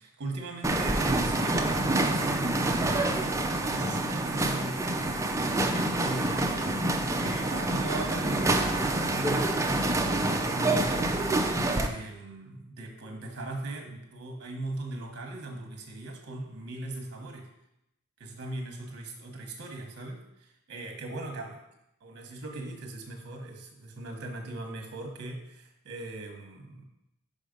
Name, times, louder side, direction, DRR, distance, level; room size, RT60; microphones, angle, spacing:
voice 1, 0.0-3.0 3.7-5.2 6.0-11.2 11.7-17.5 18.2-21.6 22.0-26.8, right 2 dB, 50° right, 3 dB, 1.0 m, -39 dB
sound 1, 0.6-11.9, right 2 dB, 15° right, 0.4 m, -27 dB
5.3 x 4.9 x 5.1 m, 0.83 s
head